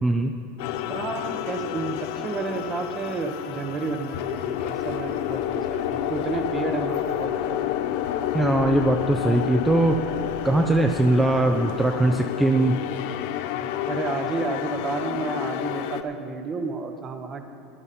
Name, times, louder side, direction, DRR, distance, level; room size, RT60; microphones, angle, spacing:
voice 1, 0.0-0.3 8.3-10.0 10.4-12.8, right 2 dB, 10° right, 3 dB, 0.6 m, -21 dB
sound 1, 0.6-16.0, left 11 dB, 65° left, 0.6 m, -29 dB
voice 2, 0.8-7.8 13.9-17.4, right 4 dB, 30° right, 6 dB, 1.0 m, -31 dB
16.0 x 10.5 x 4.3 m, 2.5 s
supercardioid pair, 120°, 0 cm